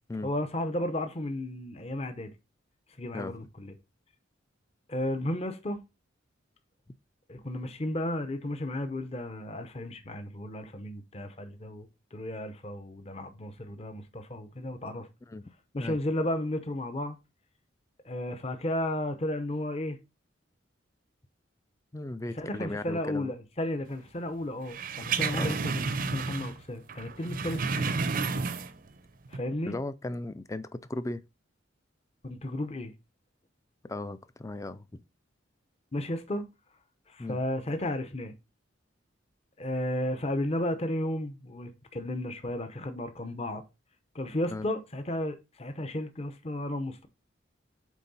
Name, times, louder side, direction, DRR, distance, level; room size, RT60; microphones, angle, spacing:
voice 1, 0.2-2.3 3.0-3.7 4.9-5.8 7.3-15.1 15.7-17.2 18.0-20.0 22.3-27.9 29.3-29.8 32.2-32.9 35.9-36.5 37.1-38.4 39.6-43.6 44.1-47.1, left 1 dB, 30° left, 0.8 m, -33 dB
voice 2, 21.9-23.3 25.4-25.6 29.6-31.2 33.8-35.0 37.2-37.4 44.5-44.7, left 2 dB, 15° left, 0.4 m, -37 dB
sound 1, 24.7-26.6 26.9-28.9 29.3-29.4, right 4 dB, 45° right, 0.5 m, -31 dB
8.3 x 3.7 x 4.1 m
head